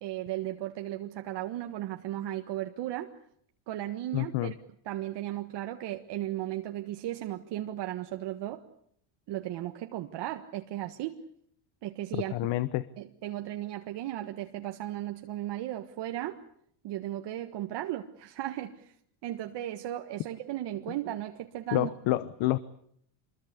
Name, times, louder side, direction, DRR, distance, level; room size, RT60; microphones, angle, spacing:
voice 1, 0.0-3.1 3.7-4.5 4.8-8.6 9.3-11.2 11.8-12.5 13.0-16.4 16.8-18.9 19.2-21.9, right 13 dB, 55° right, 4 dB, 1.6 m, -36 dB
voice 2, 4.1-4.5 12.3-12.8 21.7-22.6, left 16 dB, 65° left, 16 dB, 1.1 m, -28 dB
26.0 x 22.0 x 8.4 m, 0.68 s
cardioid pair, 135°, 50 cm